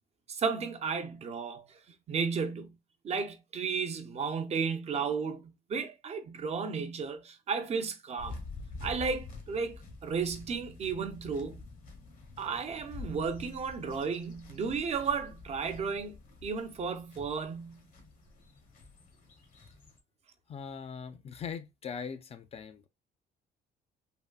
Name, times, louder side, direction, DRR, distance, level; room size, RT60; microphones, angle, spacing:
voice 1, 0.3-1.8 2.1-2.8 3.0-8.4 8.8-11.7 12.4-17.8, right 5 dB, 40° right, 0.6 m, -34 dB
sound 1, 8.2-20.0, left 3 dB, 55° left, 0.9 m, -47 dB
voice 2, 20.5-22.9, left 6 dB, 35° left, 0.4 m, -41 dB
3.5 x 2.2 x 2.3 m
cardioid pair, 110°, 17 cm